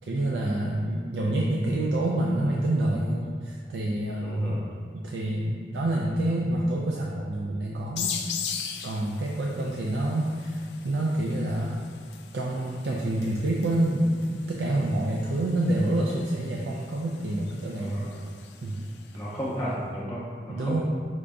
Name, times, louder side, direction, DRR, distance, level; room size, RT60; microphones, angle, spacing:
voice 1, 0.0-4.6 4.9-8.1 8.8-11.8 12.3-18.2 18.6-18.9 20.5-20.8, right 1 dB, 75° right, -3 dB, 0.4 m, -27 dB
voice 2, 4.2-4.6 17.8-18.2 19.1-20.8, equal, 10° left, -11 dB, 0.5 m, -33 dB
sound 1, 8.0-19.3, left 8 dB, 75° left, 0.4 m, -40 dB
5.0 x 2.6 x 3.4 m, 2.1 s
head